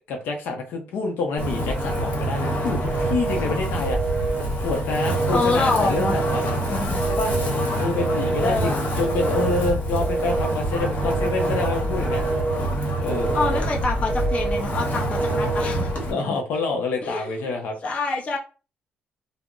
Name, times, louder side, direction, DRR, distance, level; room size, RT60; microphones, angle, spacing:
voice 1, 0.1-4.0 4.5-6.4 7.1-7.3 7.8-12.2 13.0-13.7 16.1-17.7, left 3 dB, 80° left, 2 dB, 0.6 m, -27 dB
Wind, 1.4-16.1, right 1 dB, 65° left, 1.1 m, -26 dB
Telephone, 2.9-3.4 3.9-4.5 4.9-5.5 5.9-6.5 7.0-7.5 8.0-8.5 9.0-9.6 10.0-10.6 11.0-11.6 12.1-12.6 13.0-13.6 14.1-14.7 15.1-15.7, right 4 dB, 10° right, 0.3 m, -28 dB
voice 2, 5.3-6.2 6.6-7.0 8.4-8.8 13.3-16.4 17.0-17.4 17.8-18.4, left 3 dB, 35° left, -1 dB, 0.7 m, -26 dB
2.3 x 2.0 x 3.6 m, 0.33 s
cardioid pair, 130°, 4 cm